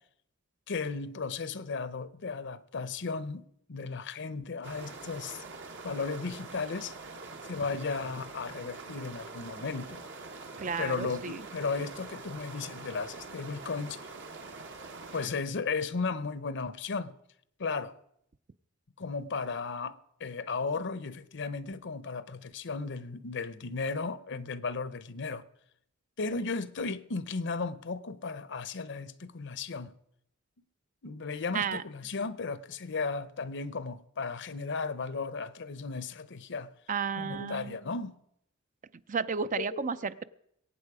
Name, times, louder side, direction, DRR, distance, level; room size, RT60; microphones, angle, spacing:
voice 1, 0.7-3.4 3.7-5.4 5.8-6.9 7.4-10.1 10.8-14.0 15.1-17.1 17.6-17.9 19.0-25.4 26.2-29.9 31.0-36.7 37.2-38.1 39.6-39.9, left 4 dB, 60° left, 0.8 m, -35 dB
sound 1, 4.6-15.3, right 3 dB, 60° right, 1.4 m, -45 dB
voice 2, 10.6-11.4 31.5-31.8 36.9-37.8 39.1-40.2, right 5 dB, 40° right, 0.5 m, -32 dB
22.5 x 9.0 x 4.9 m
head